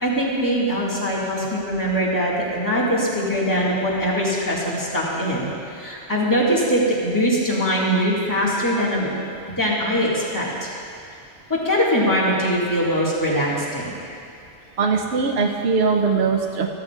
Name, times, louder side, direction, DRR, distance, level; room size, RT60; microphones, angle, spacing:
voice 1, 0.0-5.5 5.8-9.1 9.6-10.7 11.5-14.0, equal, 15° left, -6 dB, 1.9 m, -22 dB
voice 2, 14.8-16.7, right 5 dB, 65° right, 1 dB, 0.9 m, -20 dB
14.5 x 13.0 x 2.4 m, 2.4 s
omnidirectional pair, 1.2 m